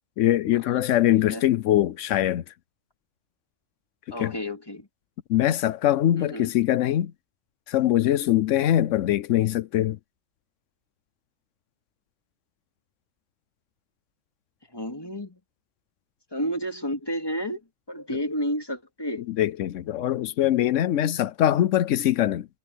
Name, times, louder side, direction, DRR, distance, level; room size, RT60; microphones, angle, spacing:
voice 1, 0.2-2.4 4.1-4.3 5.3-7.1 7.7-10.0 18.1-18.2 19.3-22.5, left 12 dB, 90° left, 1.0 m, -22 dB
voice 2, 4.1-4.9 6.2-6.5 14.7-15.4 16.3-17.6 17.9-19.2, equal, 20° left, 2.8 m, -31 dB
omnidirectional pair, 1.2 m